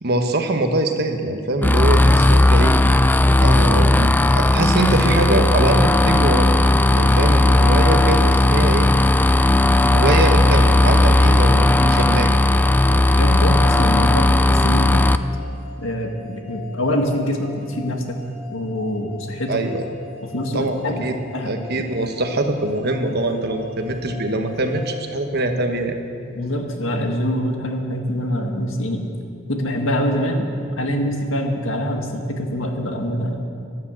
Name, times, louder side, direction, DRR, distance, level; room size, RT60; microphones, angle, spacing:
voice 1, 0.0-2.7 3.4-6.5 6.9-8.9 9.8-12.3 12.9-13.1 19.5-19.9 20.5-21.1 21.5-26.0, right 2 dB, 55° right, 5 dB, 1.2 m, -23 dB
sound 1, 1.6-15.2, left 1 dB, 10° left, 0.3 m, -15 dB
sound 2, 12.9-25.8, left 4 dB, 35° left, 4.7 m, -42 dB
voice 2, 13.2-15.1 15.8-18.0 18.5-19.6 20.2-21.1 21.3-21.9 26.3-29.1 29.5-33.5, equal, 80° left, 3 dB, 1.7 m, -24 dB
12.5 x 11.0 x 7.6 m, 2.4 s
head